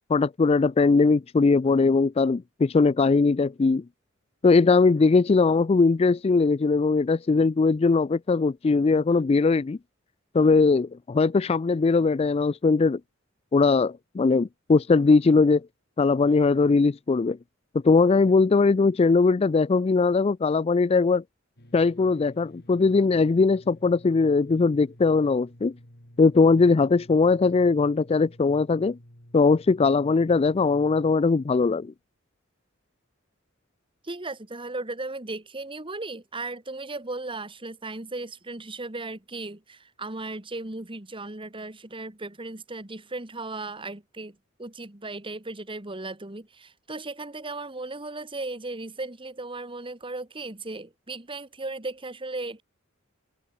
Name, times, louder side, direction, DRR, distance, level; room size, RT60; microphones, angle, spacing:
voice 1, 0.1-3.8 4.4-9.8 10.3-13.0 13.5-15.7 16.0-17.4 17.8-21.2 21.7-25.7 26.2-29.0 29.3-31.9, left 4 dB, 30° left, 0.3 m, -20 dB
sound 1, 21.6-31.1, equal, 55° left, 6.1 m, -51 dB
voice 2, 34.0-52.6, right 2 dB, 25° right, 1.9 m, -36 dB
head